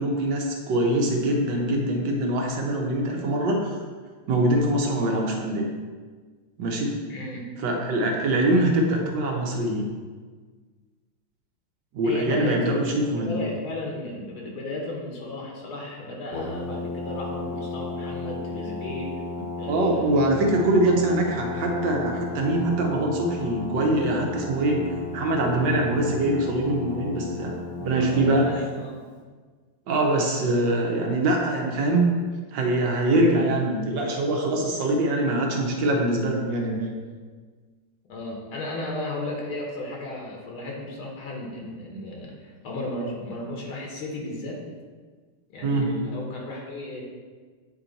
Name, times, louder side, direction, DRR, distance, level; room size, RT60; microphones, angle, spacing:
voice 1, 0.0-3.7 4.3-5.7 6.6-7.0 7.6-9.8 11.9-13.4 19.7-24.9 25.1-28.5 29.9-32.1 32.5-36.9 45.6-45.9, right 1 dB, 65° right, 1 dB, 1.6 m, -23 dB
voice 2, 7.1-7.6 12.0-19.2 19.6-20.4 27.9-29.1 38.1-44.6 45.5-47.0, left 1 dB, 75° left, -1 dB, 1.9 m, -34 dB
Brass instrument, 16.3-28.6, left 3 dB, 50° left, 1.3 m, -34 dB
8.5 x 4.4 x 4.0 m, 1.5 s
omnidirectional pair, 2.4 m